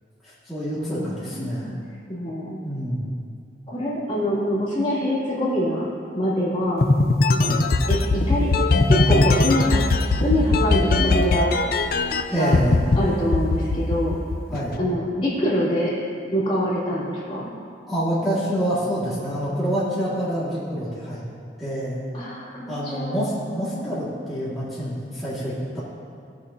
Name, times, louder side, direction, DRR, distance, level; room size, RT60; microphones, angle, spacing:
voice 1, 0.2-1.6 2.6-3.1 7.4-7.6 12.3-12.8 14.5-14.8 17.9-21.2 21.6-22.0 22.7-25.8, equal, ahead, -11 dB, 1.9 m, -27 dB
voice 2, 0.8-1.8 2.1-2.6 3.7-5.9 6.1-6.9 7.9-8.5 8.9-9.9 10.2-11.6 12.4-12.6 13.0-14.2 14.8-15.9 16.2-17.5 22.1-23.9, equal, 30° left, -8 dB, 2.6 m, -25 dB
sound 1, 6.8-12.2 12.5-13.0 13.3-14.8, left 3 dB, 55° left, 0.5 m, -19 dB
17.5 x 6.4 x 2.8 m, 2.3 s
head